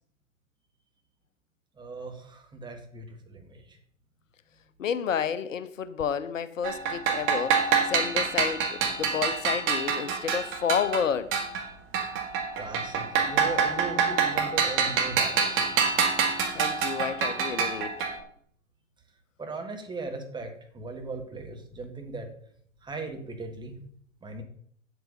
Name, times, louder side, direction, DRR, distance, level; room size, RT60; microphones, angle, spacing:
voice 1, 1.8-3.8 12.5-15.8 19.4-22.3 22.8-23.8 24.2-24.4, right 3 dB, 10° right, 1.7 m, -38 dB
voice 2, 4.8-7.6 7.9-11.3 16.5-17.9, left 7 dB, 70° left, 0.9 m, -30 dB
sound 1, 6.6-11.7 11.9-18.2, right 6 dB, 30° right, 1.8 m, -26 dB
9.0 x 8.0 x 5.3 m
figure-of-eight pair, 105°, 40 cm